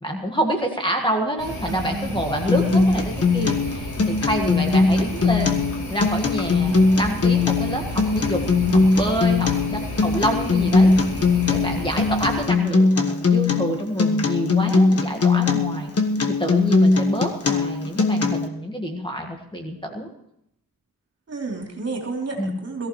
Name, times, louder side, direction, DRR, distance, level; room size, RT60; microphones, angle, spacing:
voice 1, 0.0-5.6 5.9-8.4 8.9-10.9 11.5-15.9 16.4-20.1 22.4-22.6, equal, 15° left, 2 dB, 1.6 m, -27 dB
sound 1, 1.4-12.5, left 1 dB, 55° left, 7.2 m, -32 dB
voice 2, 1.7-2.3 21.3-22.9, right 3 dB, 40° right, 0 dB, 3.5 m, -31 dB
Acoustic guitar, 2.5-18.5, left 3 dB, 40° left, 1.5 m, -20 dB
22.0 x 14.5 x 3.2 m, 0.77 s
wide cardioid pair, 120°, 37 cm